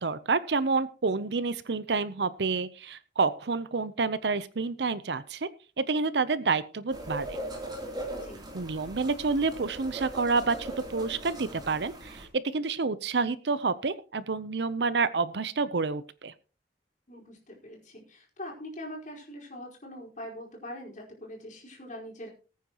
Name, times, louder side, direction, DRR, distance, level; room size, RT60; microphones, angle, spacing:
voice 1, 0.0-5.5 5.8-7.4 8.5-16.3, right 4 dB, 70° right, 15 dB, 0.7 m, -29 dB
sound 1, 6.9-12.2, right 1 dB, 25° right, 3.1 m, -39 dB
voice 2, 8.1-8.4 17.1-22.3, left 1 dB, 45° left, -1 dB, 4.7 m, -43 dB
20.0 x 9.3 x 3.0 m, 0.34 s
head